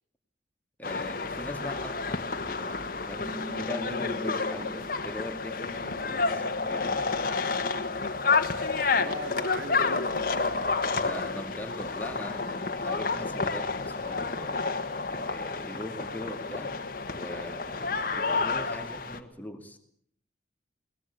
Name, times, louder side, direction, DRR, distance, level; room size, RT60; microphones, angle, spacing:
sound 1, 0.8-19.2, left 4 dB, 50° left, 1.7 m, -30 dB
voice 1, 0.8-6.4 6.7-7.1 11.0-14.6 15.1-16.8 17.1-19.8, left 1 dB, 10° left, 5 dB, 2.5 m, -40 dB
sound 2, 3.2-9.2 9.7-11.0, left 1 dB, 35° right, 3.1 m, -46 dB
voice 2, 8.9-10.7, right 1 dB, 75° right, 7 dB, 2.8 m, -39 dB
22.0 x 20.0 x 8.5 m, 0.65 s
head